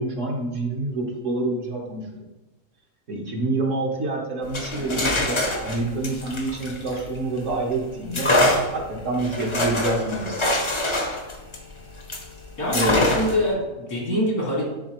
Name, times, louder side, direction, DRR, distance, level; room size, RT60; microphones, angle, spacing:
voice 1, 0.0-2.3 3.1-8.3 8.7-10.7 12.7-13.0, right 2 dB, 60° right, 0 dB, 1.5 m, -27 dB
sound 1, 4.4-7.5 8.1-12.3 12.7-13.5, left 1 dB, 30° left, 0.6 m, -24 dB
voice 2, 12.6-14.6, equal, 90° left, -4 dB, 2.6 m, -24 dB
10.0 x 4.1 x 3.0 m, 1.1 s
omnidirectional pair, 1.5 m